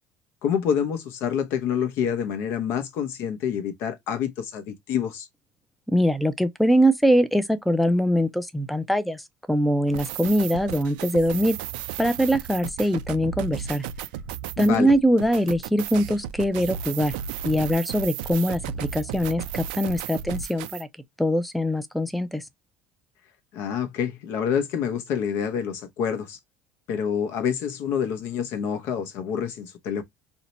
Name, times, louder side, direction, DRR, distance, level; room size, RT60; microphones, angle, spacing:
voice 1, 0.4-5.3 14.6-14.9 23.5-26.4 26.9-30.0, left 8 dB, 65° left, 0.7 m, -27 dB
voice 2, 5.9-11.6 12.0-13.8 14.6-17.1 17.4-20.9 21.2-22.4, equal, ahead, 0.4 m, -22 dB
sound 1, 9.9-20.8, right 10 dB, 85° right, 0.4 m, -34 dB
2.7 x 2.1 x 4.0 m
supercardioid pair, 95°, 4 cm